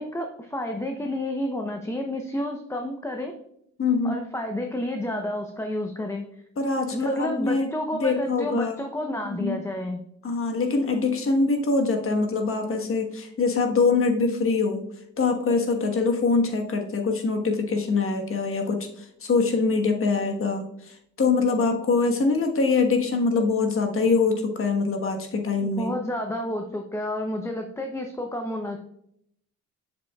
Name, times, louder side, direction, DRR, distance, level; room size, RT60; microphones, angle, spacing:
voice 1, 0.0-3.3 4.0-6.3 6.9-10.0 25.6-28.8, left 1 dB, 10° left, 3 dB, 0.8 m, -30 dB
voice 2, 3.8-4.2 6.6-7.7 8.0-8.8 9.3-9.6 10.2-14.8 15.2-25.9, left 4 dB, 45° left, 4 dB, 1.3 m, -24 dB
7.7 x 6.8 x 2.3 m, 0.72 s
cardioid pair, 90°, 30 cm